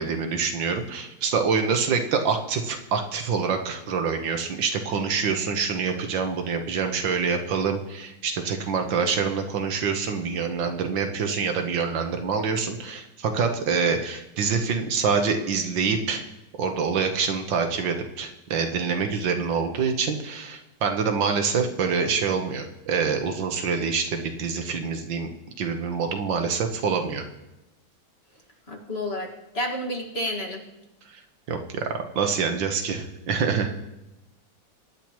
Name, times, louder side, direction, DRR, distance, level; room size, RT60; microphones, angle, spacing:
voice 1, 0.0-16.2 16.6-25.3 25.6-27.3 31.5-33.7, right 5 dB, 85° right, 5 dB, 1.9 m, -26 dB
voice 2, 28.7-29.3 29.5-30.6, left 1 dB, 35° left, 0 dB, 2.1 m, -30 dB
23.0 x 10.5 x 3.1 m, 0.96 s
omnidirectional pair, 2.0 m